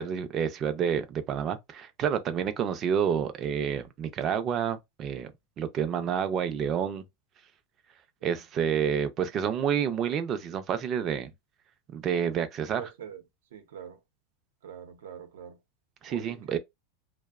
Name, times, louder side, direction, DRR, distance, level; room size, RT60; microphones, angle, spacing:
voice 1, 0.0-5.3 5.6-7.0 8.2-11.3 11.9-12.9 16.0-16.6, right 8 dB, 25° right, 0.3 m, -29 dB
voice 2, 8.2-8.7 12.8-13.2 13.5-14.0 14.6-15.6 16.1-16.6, right 8 dB, 90° right, 0.6 m, -45 dB
2.6 x 2.0 x 2.3 m
supercardioid pair, 175°, 0 cm